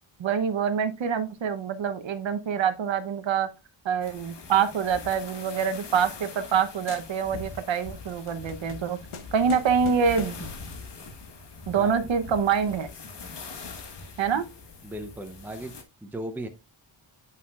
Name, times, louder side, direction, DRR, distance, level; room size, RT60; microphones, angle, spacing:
voice 1, 0.2-3.5 3.8-9.0 9.3-10.5 11.7-12.9 14.2-14.5, right 7 dB, 65° right, 0.8 m, -25 dB
sound 1, 4.0-15.8, left 4 dB, 55° left, 1.2 m, -43 dB
sound 2, 5.2-6.6 6.9-7.5 7.9-10.6, left 5 dB, 90° left, 1.1 m, -45 dB
voice 2, 14.8-15.7 16.0-16.5, right 1 dB, 5° right, 0.6 m, -36 dB
8.5 x 5.6 x 2.3 m
wide cardioid pair, 170°, 49 cm